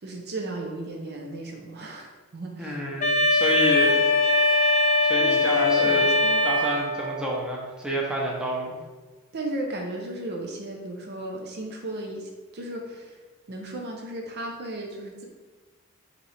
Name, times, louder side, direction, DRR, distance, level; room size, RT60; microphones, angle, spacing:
voice 1, 0.0-2.8 5.2-6.4 9.3-13.2 13.5-15.2, right 1 dB, 50° right, 1 dB, 0.6 m, -35 dB
voice 2, 2.6-4.0 5.0-6.0 6.4-8.8, equal, 5° right, -3 dB, 0.7 m, -29 dB
Wind instrument woodwind instrument, 3.0-7.2, left 2 dB, 35° left, 0.6 m, -21 dB
Trumpet, 3.7-8.0, right 3 dB, 25° right, 1.1 m, -37 dB
4.9 x 3.0 x 3.3 m, 1.3 s
head